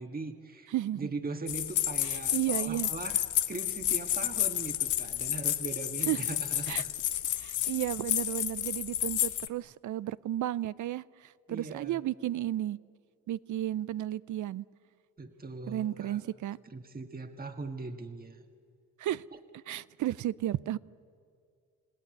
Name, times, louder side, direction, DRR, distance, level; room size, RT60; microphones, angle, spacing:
voice 1, 0.0-3.2 3.5-6.9 11.5-12.0 15.2-16.2 16.6-18.4 19.3-19.4, right 3 dB, 25° right, 5 dB, 1.8 m, -40 dB
voice 2, 0.7-1.1 2.0-2.9 6.1-6.2 6.7-6.8 7.4-12.8 13.3-14.6 15.7-16.6 19.0-19.2 19.7-20.8, right 13 dB, 60° right, 19 dB, 0.6 m, -33 dB
sound 1, 1.5-9.5, left 11 dB, 60° left, 0.8 m, -31 dB
29.5 x 17.0 x 9.7 m, 2.3 s
supercardioid pair, 55°, 35 cm